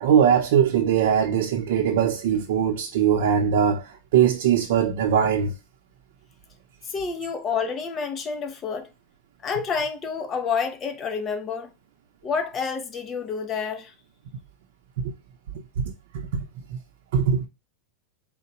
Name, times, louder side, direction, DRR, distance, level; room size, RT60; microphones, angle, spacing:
voice 1, 0.0-3.8 4.1-5.5 15.8-15.9 16.3-16.4 17.1-17.5, right 8 dB, 70° right, 0.7 m, -21 dB
voice 2, 6.9-8.9 9.4-11.7 12.2-13.9, left 5 dB, 20° left, 0.6 m, -28 dB
3.9 x 2.2 x 4.4 m
supercardioid pair, 160°, 0 cm